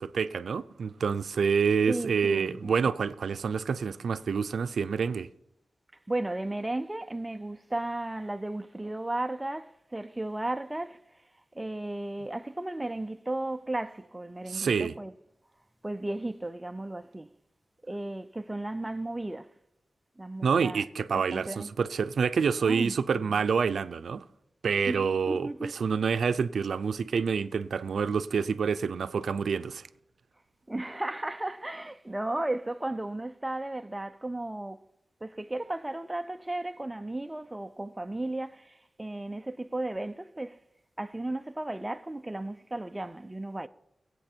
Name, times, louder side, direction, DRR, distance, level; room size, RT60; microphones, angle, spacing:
voice 1, 0.0-5.3 14.5-14.9 20.4-24.2 24.6-25.5 25.8-29.9, right 6 dB, 90° right, 0.5 m, -27 dB
voice 2, 1.9-2.7 6.1-11.0 11.5-15.1 15.8-17.3 17.8-19.5 20.2-20.8 21.1-21.7 22.6-23.4 24.9-25.7 30.7-34.8 35.2-40.6 41.0-43.7, right 2 dB, 10° right, 0.5 m, -35 dB
22.0 x 8.4 x 4.5 m
wide cardioid pair, 180°, 0 cm